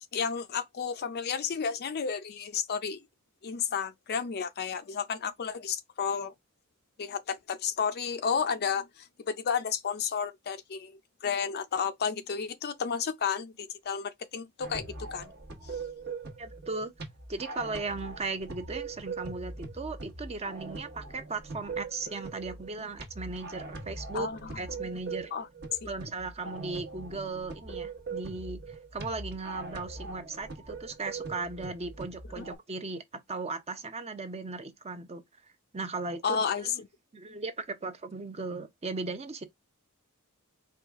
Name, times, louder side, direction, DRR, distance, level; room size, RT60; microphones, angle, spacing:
voice 1, 0.1-3.0 3.4-6.3 7.0-15.3 24.1-24.5 25.3-25.5 25.8-25.9 32.4-32.5 36.2-36.7, left 6 dB, 45° left, 0.5 m, -32 dB
sound 1, 14.6-32.5, right 3 dB, 50° right, 1.0 m, -41 dB
voice 2, 16.4-16.9 17.3-24.3 24.6-25.3 25.9-28.6 28.9-33.0 33.3-35.2 35.7-36.8 37.1-39.5, right 3 dB, 30° right, 0.6 m, -37 dB
4.7 x 2.3 x 3.5 m
head